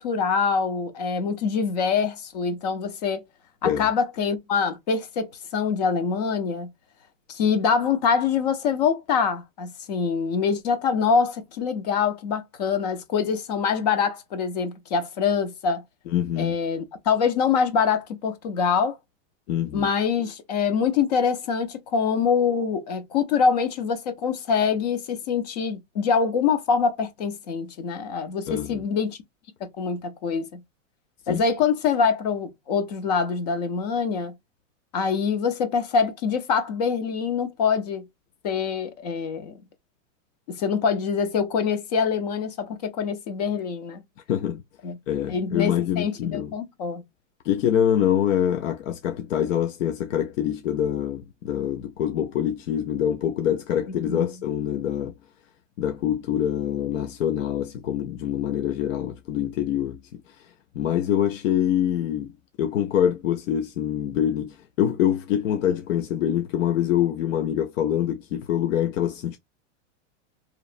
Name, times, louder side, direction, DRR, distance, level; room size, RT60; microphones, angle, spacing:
voice 1, 0.0-3.2 3.6-6.7 7.3-15.8 16.4-19.0 19.7-29.2 29.6-30.6 31.3-34.3 34.9-38.1 38.4-39.6 40.5-44.0 44.8-45.0 45.3-47.0 54.1-54.3, left 6 dB, 35° left, 0.5 m, -24 dB
voice 2, 16.1-16.6 19.5-19.9 28.5-28.8 31.3-31.4 44.3-44.6 45.1-46.5 47.4-55.1 55.8-60.5 60.8-62.3 62.6-69.4, left 10 dB, 80° left, 0.6 m, -25 dB
2.9 x 2.0 x 2.4 m
supercardioid pair, 170°, 38 cm